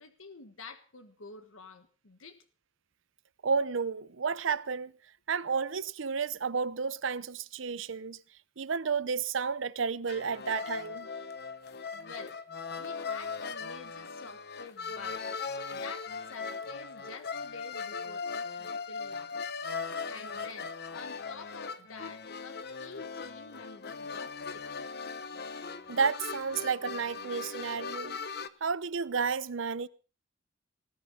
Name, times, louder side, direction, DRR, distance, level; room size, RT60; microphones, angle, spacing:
voice 1, 0.0-2.4 11.9-12.4 12.8-15.2 15.7-19.5 20.1-24.6, left 4 dB, 80° left, 1.5 m, -49 dB
voice 2, 3.4-4.9 5.3-8.2 8.6-11.1 25.9-28.2 28.6-29.9, right 5 dB, 70° right, 0.7 m, -31 dB
sound 1, 10.1-28.5, left 5 dB, 50° left, 0.8 m, -39 dB
18.5 x 10.0 x 5.7 m
head